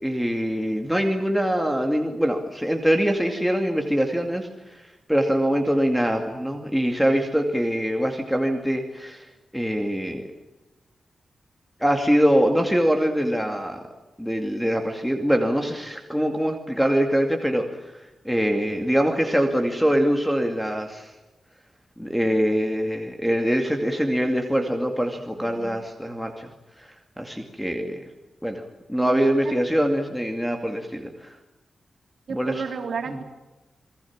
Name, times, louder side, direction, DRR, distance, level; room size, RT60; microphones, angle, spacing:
voice 1, 0.0-4.8 5.1-9.3 9.5-10.2 11.8-13.8 14.2-17.7 17.9-21.1 22.0-26.5 26.8-28.0 28.4-28.6 28.9-31.4 32.3-32.6 33.1-33.2, equal, ahead, 4 dB, 2.4 m, -23 dB
voice 2, 32.3-33.2, right 5 dB, 70° right, 3 dB, 4.1 m, -31 dB
28.5 x 21.5 x 7.4 m, 1.1 s
wide cardioid pair, 150°, 0 cm